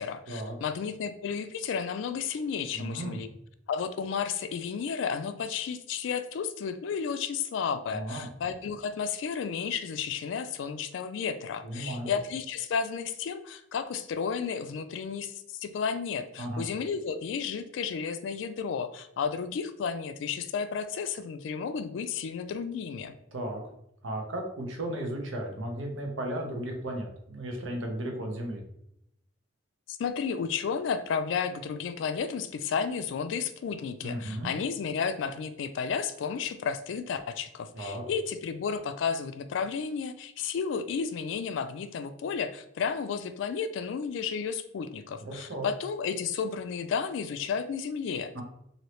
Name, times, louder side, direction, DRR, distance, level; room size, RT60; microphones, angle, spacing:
voice 1, 0.0-3.3 3.7-23.1 29.9-48.4, left 6 dB, 70° left, 10 dB, 0.3 m, -32 dB
voice 2, 2.7-3.2 7.9-8.3 11.6-12.1 16.4-16.6 23.3-23.6 24.0-28.6 34.0-34.5 37.7-38.0 45.2-45.7 48.3-48.4, right 1 dB, 80° right, 1 dB, 0.8 m, -35 dB
3.1 x 2.7 x 2.9 m, 0.77 s
head